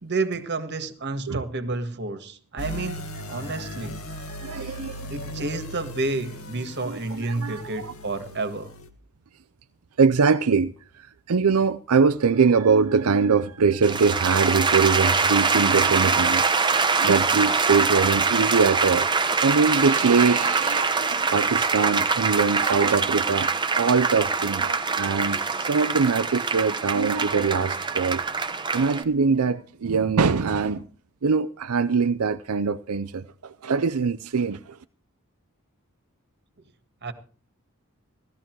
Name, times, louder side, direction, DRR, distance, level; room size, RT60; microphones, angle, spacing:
voice 1, 0.0-4.0 5.1-8.7 37.0-37.1, right 3 dB, 50° right, 1.7 m, -30 dB
sound 1, 2.6-8.9, left 1 dB, 75° left, 1.8 m, -38 dB
voice 2, 4.3-5.1 6.9-7.9 10.0-16.4 17.0-19.1 19.4-23.5 23.8-30.9 31.2-34.8, right 5 dB, 85° right, 0.6 m, -23 dB
sound 2, 13.8-29.0, right 4 dB, 20° right, 1.0 m, -24 dB
16.5 x 13.0 x 4.6 m
head